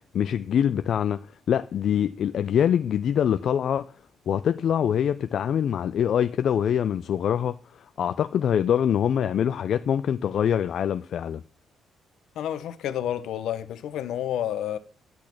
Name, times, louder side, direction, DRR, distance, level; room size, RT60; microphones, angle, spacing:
voice 1, 0.1-1.2 1.5-3.9 4.3-7.6 8.0-11.4, left 9 dB, 65° left, 0.4 m, -24 dB
voice 2, 12.3-14.8, left 11 dB, 80° left, 0.9 m, -30 dB
8.6 x 6.2 x 5.9 m
cardioid pair, 90°, 0 cm